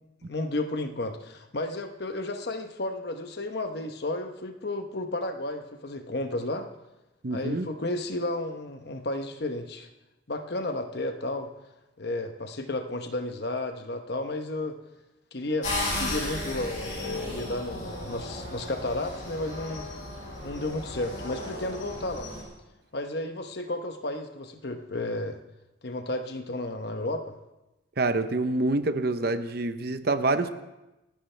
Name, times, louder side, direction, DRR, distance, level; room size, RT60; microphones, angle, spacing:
voice 1, 0.2-6.7 7.3-9.9 10.3-11.5 12.0-14.8 15.3-15.7 16.0-19.9 20.4-22.3 22.9-25.4 25.8-27.3, left 2 dB, 55° left, 6 dB, 1.0 m, -32 dB
voice 2, 7.2-7.7 28.0-30.5, right 2 dB, 55° right, 10 dB, 0.7 m, -26 dB
sound 1, 15.6-22.4, left 1 dB, 40° left, 5.8 m, -35 dB
28.5 x 10.0 x 3.3 m, 0.99 s
head